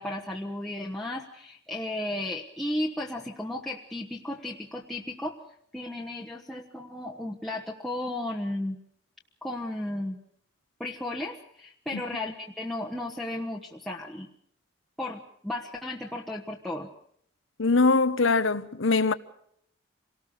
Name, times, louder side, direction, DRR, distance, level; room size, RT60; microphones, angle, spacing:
voice 1, 0.0-5.4 5.7-8.8 9.4-10.2 10.8-14.3 15.0-16.9, left 1 dB, ahead, 1.2 m, -34 dB
voice 2, 17.6-19.1, left 3 dB, 75° left, 1.0 m, -22 dB
27.0 x 18.5 x 6.7 m
head